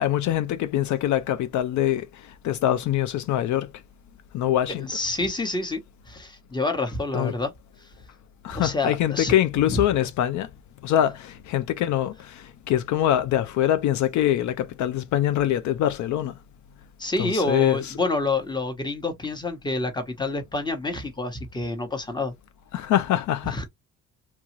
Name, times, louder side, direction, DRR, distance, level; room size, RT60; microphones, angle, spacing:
voice 1, 0.0-3.7 4.3-4.9 7.1-7.3 8.4-10.5 10.8-16.3 17.2-17.8 22.7-23.6, left 12 dB, 70° left, 0.4 m, -24 dB
voice 2, 4.8-5.8 6.1-7.5 8.5-9.3 9.7-9.8 17.0-22.3 23.4-23.6, left 2 dB, 15° left, 0.9 m, -28 dB
2.9 x 2.3 x 3.0 m
cardioid pair, 90°, 30 cm